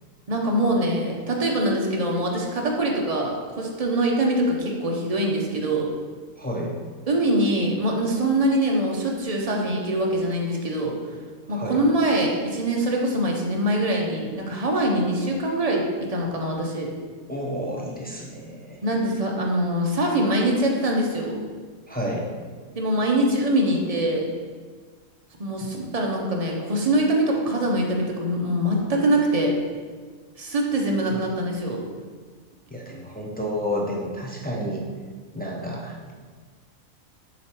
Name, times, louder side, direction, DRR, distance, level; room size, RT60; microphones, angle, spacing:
voice 1, 0.3-5.9 7.1-10.9 11.5-16.9 18.8-21.4 22.7-24.3 25.4-29.5 30.4-31.8, right 1 dB, 35° right, 0 dB, 0.7 m, -23 dB
voice 2, 6.4-6.8 11.5-11.8 17.3-18.8 21.9-22.3 25.6-25.7 31.1-31.2 32.7-34.8 35.3-36.1, equal, 15° left, -3 dB, 0.4 m, -30 dB
6.8 x 3.1 x 4.4 m, 1.5 s
omnidirectional pair, 1.4 m